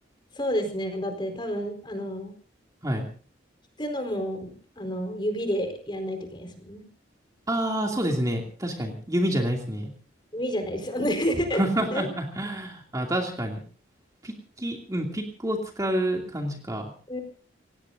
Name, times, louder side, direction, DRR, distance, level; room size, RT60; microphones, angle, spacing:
voice 1, 0.3-2.3 3.8-6.9 10.3-11.6 11.9-12.1 17.1-17.2, equal, 25° left, 5 dB, 4.5 m, -29 dB
voice 2, 7.5-9.9 11.5-13.6 14.2-16.9, right 1 dB, 20° right, 1 dB, 2.6 m, -28 dB
28.0 x 18.0 x 2.7 m, 0.41 s
head